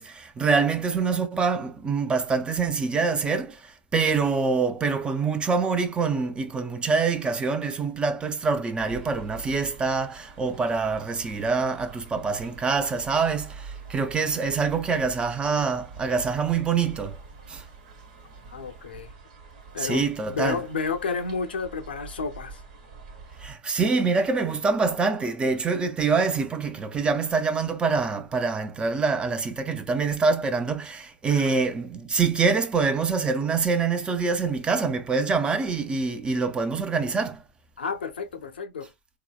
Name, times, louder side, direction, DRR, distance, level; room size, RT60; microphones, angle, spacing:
voice 1, 0.0-17.2 17.5-17.6 19.8-20.6 23.4-37.4, right 4 dB, 15° right, 0.6 m, -25 dB
sound 1, 8.8-23.5, right 4 dB, 55° right, 1.3 m, -45 dB
voice 2, 18.4-19.1 19.7-20.1 20.3-22.6 31.4-31.5 37.8-38.9, left 5 dB, 75° left, 0.7 m, -31 dB
3.8 x 2.9 x 2.2 m
figure-of-eight pair, 100°, 6 cm